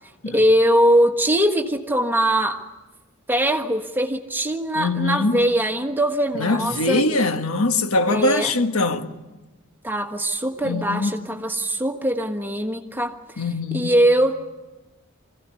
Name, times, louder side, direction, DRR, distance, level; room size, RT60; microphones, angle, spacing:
voice 1, 0.3-2.6 3.3-7.0 8.1-8.5 9.8-13.1 13.7-14.4, right 1 dB, 10° right, 1.5 m, -21 dB
voice 2, 4.7-5.5 6.3-9.1 10.6-11.3 13.4-13.9, left 2 dB, 75° left, 1.5 m, -22 dB
25.0 x 16.5 x 9.7 m
head